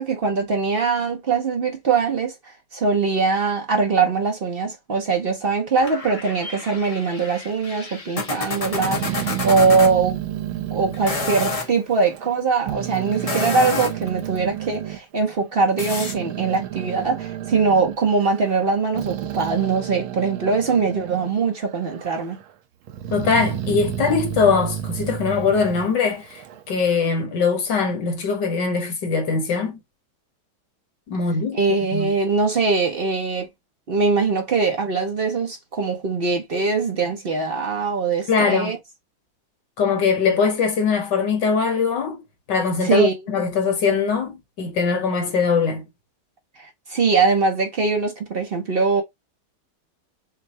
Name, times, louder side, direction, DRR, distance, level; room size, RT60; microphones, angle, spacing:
voice 1, 0.0-2.3 2.7-10.2 10.7-22.4 31.5-33.5 33.9-38.8 42.8-43.2 46.6-49.0, right 4 dB, 55° right, 0.6 m, -22 dB
sound 1, 5.8-9.9 10.9-11.7 13.1-14.1 15.8-16.1, left 4 dB, 40° left, 0.5 m, -29 dB
Growling, 8.6-12.4 12.7-15.0 15.5-21.4 21.7-22.4 22.9-26.6, right 12 dB, 85° right, 1.6 m, -31 dB
voice 2, 23.1-29.8 31.1-31.6 31.9-32.1 38.3-38.7 39.8-42.2 42.5-45.8, left 5 dB, 60° left, 1.6 m, -21 dB
6.4 x 2.2 x 2.6 m
omnidirectional pair, 2.2 m